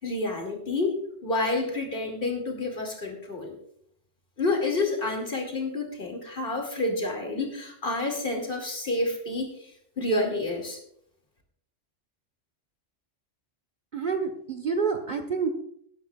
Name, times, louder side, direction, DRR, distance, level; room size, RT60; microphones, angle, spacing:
voice 1, 0.0-3.5 4.4-10.8, left 2 dB, 45° left, 2 dB, 2.7 m, -29 dB
voice 2, 13.9-15.5, right 5 dB, 40° right, 4 dB, 1.3 m, -28 dB
19.0 x 10.0 x 2.4 m, 0.69 s
omnidirectional pair, 1.3 m